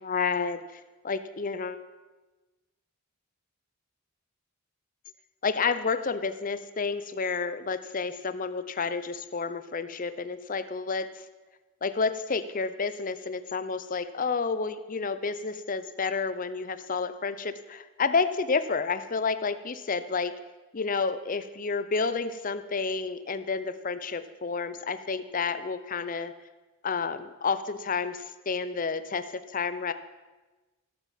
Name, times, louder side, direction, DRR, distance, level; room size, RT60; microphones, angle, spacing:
voice 1, 0.0-1.8 5.4-11.1 11.8-20.3 20.7-26.3 26.8-29.9, left 4 dB, 40° left, 12 dB, 0.7 m, -30 dB
15.5 x 8.3 x 7.5 m, 1.2 s
head